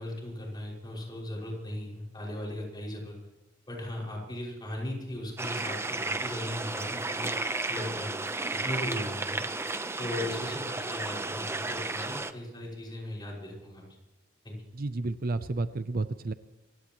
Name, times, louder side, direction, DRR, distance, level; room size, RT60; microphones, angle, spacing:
voice 1, 0.0-3.1 3.7-7.4 7.7-8.1 8.5-9.4 10.0-14.0 14.4-14.6, left 1 dB, 20° left, -2 dB, 5.8 m, -37 dB
sound 1, 5.4-12.3, right 2 dB, 15° right, 0.7 m, -33 dB
voice 2, 14.7-16.3, right 2 dB, 45° right, 12 dB, 0.6 m, -31 dB
27.0 x 16.5 x 3.1 m, 1.1 s
head